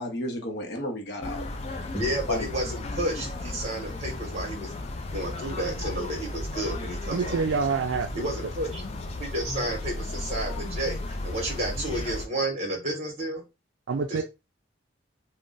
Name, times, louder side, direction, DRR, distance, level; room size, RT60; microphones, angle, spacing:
voice 1, 0.0-1.9 2.3-2.5, left 1 dB, 55° left, 0.7 m, -33 dB
sound 1, 1.2-12.3, left 2 dB, 30° left, 0.3 m, -35 dB
voice 2, 1.9-4.8 5.1-7.4 8.2-8.8 9.2-13.4 14.1-14.2, right 1 dB, 35° right, 1.1 m, -31 dB
voice 3, 7.1-8.1 13.9-14.2, right 5 dB, 65° right, 0.4 m, -26 dB
2.5 x 2.1 x 3.6 m
head